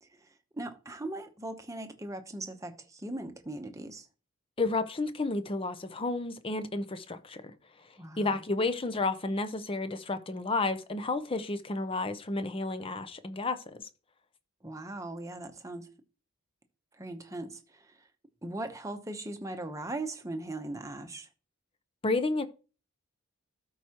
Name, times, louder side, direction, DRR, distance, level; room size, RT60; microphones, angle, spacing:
voice 1, 0.0-4.1 8.0-8.4 14.6-15.9 16.9-18.1 18.4-21.3, right 2 dB, 15° right, 0.9 m, -39 dB
voice 2, 4.6-7.5 8.2-13.6 22.0-22.5, left 3 dB, 25° left, 0.6 m, -31 dB
13.0 x 4.7 x 2.9 m
head